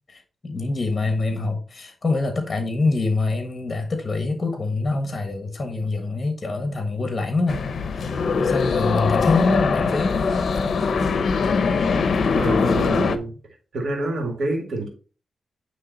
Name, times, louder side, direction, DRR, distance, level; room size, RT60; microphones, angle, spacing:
voice 1, 0.1-7.6 7.9-10.2, left 3 dB, 40° left, 1.4 m, -25 dB
sound 1, 7.5-13.2, left 5 dB, 70° left, 0.7 m, -22 dB
voice 2, 12.3-13.4 13.7-14.9, right 2 dB, 75° right, 2.1 m, -27 dB
9.4 x 3.2 x 4.1 m
cardioid pair, 70°, 0 cm